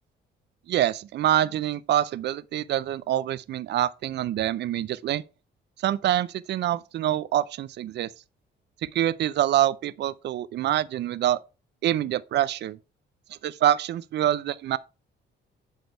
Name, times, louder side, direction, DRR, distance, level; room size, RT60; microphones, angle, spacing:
voice 1, 0.7-5.2 5.8-8.1 8.8-11.4 11.8-12.8 13.4-14.8, right 12 dB, 60° right, 0.4 m, -25 dB
8.1 x 3.4 x 4.5 m
cardioid pair, 90°, 20 cm